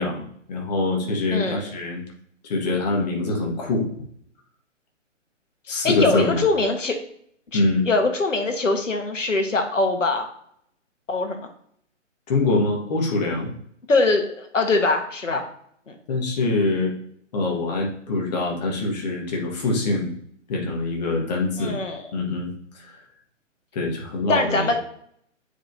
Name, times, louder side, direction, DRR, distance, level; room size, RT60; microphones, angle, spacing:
voice 1, 0.0-2.0 2.4-3.9 5.7-6.4 7.5-7.9 12.3-13.5 16.1-16.9 17.3-20.1 20.5-21.8 22.1-23.0 23.7-24.8, left 2 dB, 35° left, 0 dB, 1.6 m, -24 dB
voice 2, 1.3-1.7 5.8-6.9 7.5-10.3 11.1-11.4 13.9-15.5 15.9-16.0 21.6-22.1 24.3-24.8, left 3 dB, 75° left, 5 dB, 1.4 m, -22 dB
7.8 x 4.9 x 2.7 m, 0.68 s
figure-of-eight pair, 140°, 38 cm